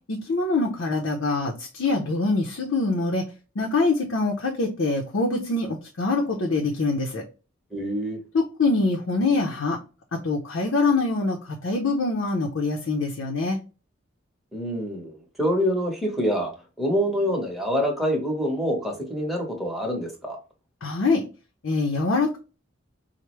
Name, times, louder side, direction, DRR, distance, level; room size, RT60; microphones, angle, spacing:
voice 1, 0.1-3.2 3.6-7.2 8.3-9.8 10.2-11.4 11.6-13.6 20.8-21.2 21.6-22.4, left 3 dB, 80° left, 0 dB, 0.7 m, -24 dB
voice 2, 7.7-8.2 14.5-16.5 16.8-20.4, equal, ahead, -1 dB, 1.1 m, -26 dB
4.6 x 2.1 x 3.0 m, 0.32 s
head